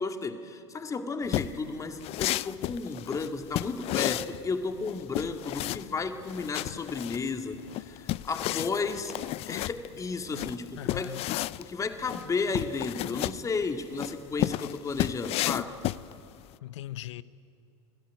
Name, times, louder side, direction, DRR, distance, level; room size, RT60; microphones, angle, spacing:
voice 1, 0.0-9.1 9.5-11.2 11.6-15.8, left 4 dB, 20° left, 2.1 m, -33 dB
sound 1, 1.3-16.5, left 16 dB, 40° left, 0.5 m, -33 dB
voice 2, 10.7-11.3 16.6-17.2, left 14 dB, 75° left, 0.8 m, -39 dB
26.5 x 17.0 x 9.3 m
hypercardioid pair, 100°, 15 cm